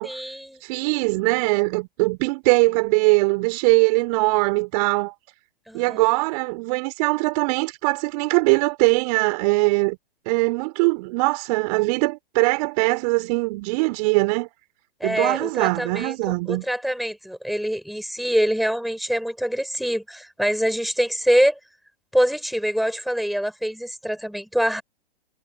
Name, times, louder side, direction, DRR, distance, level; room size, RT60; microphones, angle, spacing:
voice 1, 0.0-0.6 5.7-6.0 15.0-16.1 16.5-21.6 22.1-24.8, equal, ahead, 4.9 m, -24 dB
voice 2, 0.6-5.1 5.7-10.0 10.3-14.5 15.0-16.7, right 26 dB, 40° right, 4.6 m, -21 dB
figure-of-eight pair, 120°, 31 cm